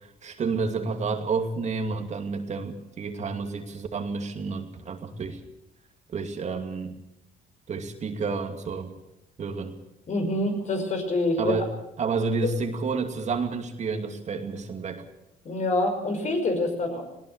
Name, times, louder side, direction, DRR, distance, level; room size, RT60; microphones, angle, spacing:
voice 1, 0.2-5.4 6.1-6.9 7.7-8.9 9.4-9.7 11.4-11.7 12.0-15.0, right 4 dB, 45° right, 5 dB, 2.5 m, -30 dB
voice 2, 10.1-11.6 15.4-17.0, left 2 dB, 45° left, 5 dB, 5.6 m, -26 dB
19.0 x 18.0 x 8.2 m, 0.87 s
cardioid pair, 110°, 17 cm